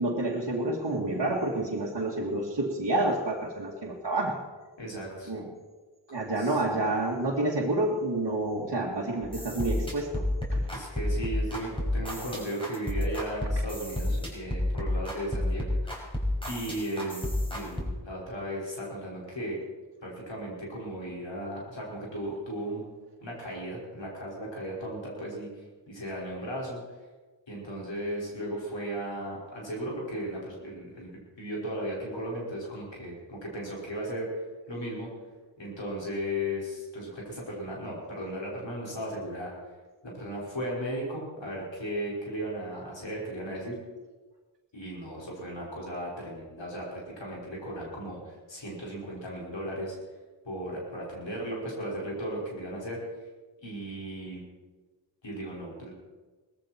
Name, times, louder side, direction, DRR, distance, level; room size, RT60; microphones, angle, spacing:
voice 1, 0.0-4.4 5.3-5.5 6.1-10.2 10.5-10.7, right 2 dB, 55° right, -3 dB, 2.3 m, -29 dB
voice 2, 4.8-5.3 6.4-6.6 10.7-16.1 16.5-19.6 20.0-22.8 23.2-25.5 25.9-26.8 27.5-34.3 34.7-35.1 35.6-39.5 40.0-43.7 44.7-50.0 50.4-53.0 53.6-54.4 55.2-55.9, equal, 75° left, -4 dB, 5.4 m, -36 dB
sound 1, 9.2-17.8, left 1 dB, 10° left, 5.5 m, -30 dB
19.5 x 14.0 x 4.5 m, 1.3 s
cardioid pair, 45°, 44 cm